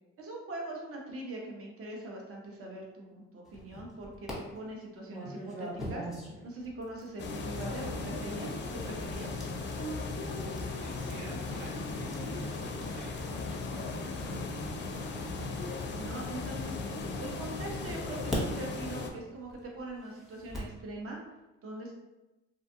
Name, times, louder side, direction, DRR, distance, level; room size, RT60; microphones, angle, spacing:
voice 1, 0.2-9.4 15.9-21.2 21.6-21.9, right 1 dB, 50° right, -1 dB, 0.7 m, -42 dB
sound 1, 3.5-4.3 5.1-17.1 17.8-20.8, equal, ahead, 0.8 m, -45 dB
sound 2, 7.2-19.1, left 3 dB, 40° left, 0.4 m, -37 dB
voice 2, 10.7-14.4, right 2 dB, 85° right, -3 dB, 0.7 m, -47 dB
2.6 x 2.3 x 2.6 m, 1.1 s
cardioid pair, 90°, 30 cm